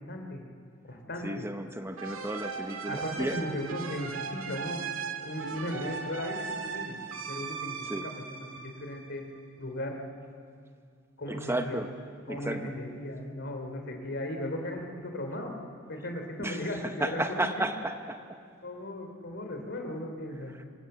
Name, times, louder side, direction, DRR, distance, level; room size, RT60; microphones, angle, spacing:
voice 1, 0.1-0.4 0.9-1.5 2.9-4.8 5.2-7.0 7.3-9.2 9.6-10.0 11.2-11.9 12.3-15.5 15.9-17.7 18.6-20.6, left 1 dB, 60° left, 3 dB, 3.1 m, -37 dB
voice 2, 1.2-3.4 7.8-8.1 11.3-11.9 12.3-12.7 16.4-18.4 20.6-20.7, right 1 dB, 10° right, 7 dB, 0.8 m, -33 dB
sound 1, 2.0-9.4, right 5 dB, 80° right, 2.0 m, -38 dB
25.0 x 17.0 x 7.9 m, 2.2 s
head